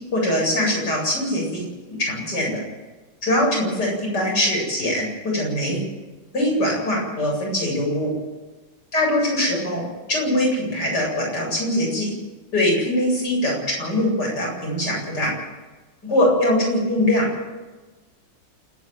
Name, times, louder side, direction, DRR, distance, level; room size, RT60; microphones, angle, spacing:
voice 1, 0.1-2.6 3.2-5.8 6.3-8.1 8.9-9.8 10.1-12.1 12.5-15.3 16.0-17.5, left 1 dB, 55° left, -2 dB, 8.8 m, -22 dB
28.0 x 10.5 x 9.6 m, 1.2 s
omnidirectional pair, 2.1 m